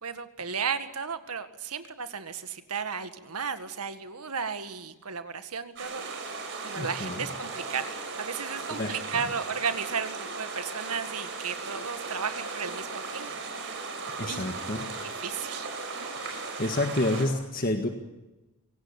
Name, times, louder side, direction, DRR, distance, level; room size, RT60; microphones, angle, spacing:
voice 1, 0.0-6.3 6.6-13.3 13.6-13.8 14.3-14.5 15.2-15.7, right 6 dB, 85° right, 9 dB, 1.9 m, -34 dB
sound 1, 5.8-17.3, right 4 dB, 55° right, 5.9 m, -37 dB
voice 2, 6.8-7.3 8.7-9.3 14.2-14.8 16.2-17.9, left 1 dB, 40° left, 5 dB, 1.8 m, -30 dB
25.0 x 18.0 x 8.8 m, 1.1 s
head